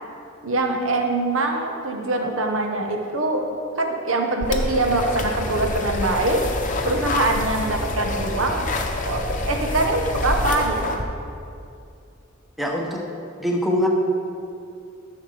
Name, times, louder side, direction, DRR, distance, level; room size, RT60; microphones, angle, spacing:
voice 1, 0.4-3.4 3.8-8.7 9.0-11.0, right 2 dB, 80° right, 3 dB, 1.1 m, -23 dB
sound 1, 4.4-11.0, left 2 dB, 40° left, 0.7 m, -27 dB
voice 2, 12.6-13.0 13.4-13.9, equal, ahead, -1 dB, 0.9 m, -23 dB
13.0 x 6.4 x 3.4 m, 2.5 s
head